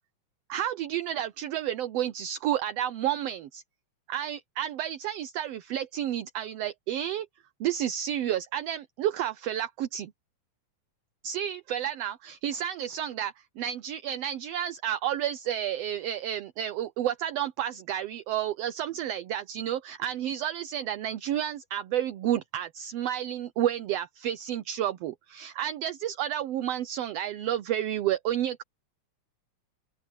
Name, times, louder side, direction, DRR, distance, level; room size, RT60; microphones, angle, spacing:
voice 1, 0.5-3.6 4.1-7.3 7.6-10.1 11.2-28.6, right 11 dB, 70° right, 1.6 m, -31 dB
open air
omnidirectional pair, 3.5 m